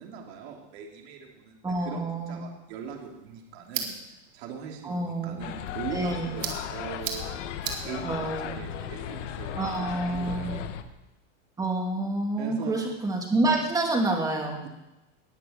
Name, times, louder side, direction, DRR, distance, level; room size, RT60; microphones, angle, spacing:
voice 1, 0.0-3.9 4.3-7.2 7.8-10.7 12.4-12.8 14.6-14.7, right 7 dB, 55° right, 1 dB, 3.1 m, -40 dB
voice 2, 1.6-2.4 4.8-5.4 5.9-6.3 8.0-8.5 9.6-10.5 11.6-14.6, right 2 dB, 10° right, 1 dB, 2.6 m, -28 dB
sound 1, 2.7-10.6, right 7 dB, 85° right, 3.0 m, -41 dB
sound 2, 5.4-10.8, left 9 dB, 75° left, 1.4 m, -36 dB
20.0 x 7.2 x 8.0 m, 0.97 s
supercardioid pair, 160°, 37 cm